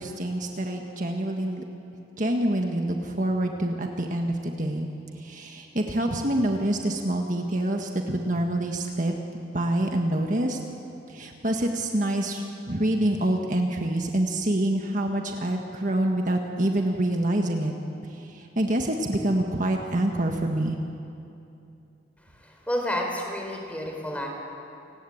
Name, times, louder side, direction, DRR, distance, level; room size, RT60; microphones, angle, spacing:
voice 1, 0.0-1.6 2.2-4.9 5.2-9.1 9.5-10.6 11.1-17.7 18.0-20.8, right 1 dB, 45° right, 2 dB, 1.7 m, -26 dB
voice 2, 22.7-24.3, left 1 dB, 10° left, 1 dB, 4.4 m, -29 dB
29.0 x 19.0 x 8.8 m, 2.7 s
head